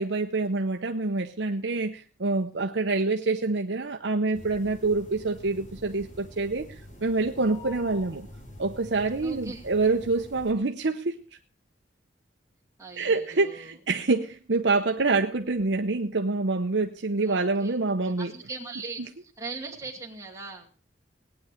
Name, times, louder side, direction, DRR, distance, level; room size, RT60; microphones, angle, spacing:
voice 1, 0.0-8.3 8.6-11.4 13.0-18.3 19.0-19.1, right 3 dB, 70° right, 5 dB, 0.9 m, -26 dB
sound 1, 4.3-10.5, left 1 dB, 40° left, 4.8 m, -46 dB
voice 2, 9.2-9.7 12.8-13.7 17.2-17.7 18.2-19.0 19.4-20.7, right 3 dB, 15° right, 0 dB, 2.6 m, -39 dB
18.0 x 9.7 x 5.1 m, 0.39 s
head